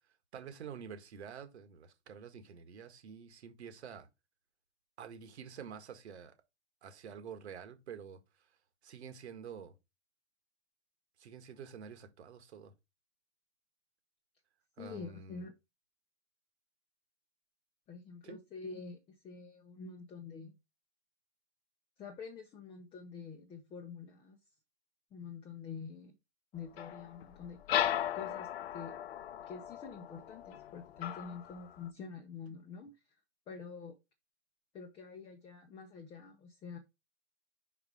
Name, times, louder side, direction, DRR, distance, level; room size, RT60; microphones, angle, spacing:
voice 1, 0.3-4.1 5.0-6.3 6.8-8.5 8.8-9.7 11.2-12.7 14.8-15.5 18.2-18.4, right 7 dB, 70° right, 1.6 m, -48 dB
voice 2, 14.8-15.5 17.9-20.5 22.0-24.4 25.1-26.1 26.5-27.6 28.1-29.0 29.5-32.9 33.5-34.0 34.7-36.8, left 5 dB, 15° left, 0.8 m, -47 dB
sound 1, 26.8-31.9, left 11 dB, 60° left, 0.8 m, -37 dB
5.0 x 4.8 x 4.8 m
hypercardioid pair, 130°, 35 cm